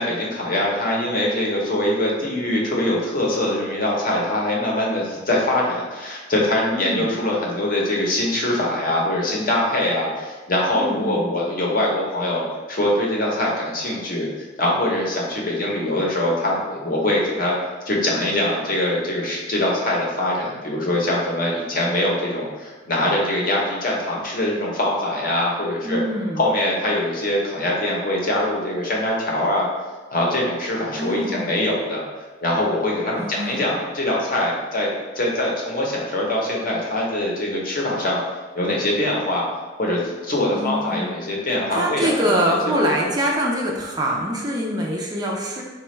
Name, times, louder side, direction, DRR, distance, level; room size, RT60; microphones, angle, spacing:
voice 1, 0.0-12.4 12.7-17.6 17.9-26.0 26.4-29.7 30.1-32.1 32.4-38.2 38.5-39.4 39.8-42.7 43.0-43.1, left 1 dB, 45° left, -2 dB, 0.7 m, -23 dB
voice 2, 6.7-7.1 10.7-11.3 25.8-26.4 31.0-31.5 33.2-33.7 40.5-41.2 41.7-45.6, equal, 20° right, -1 dB, 0.4 m, -24 dB
4.1 x 2.2 x 3.0 m, 1.3 s
head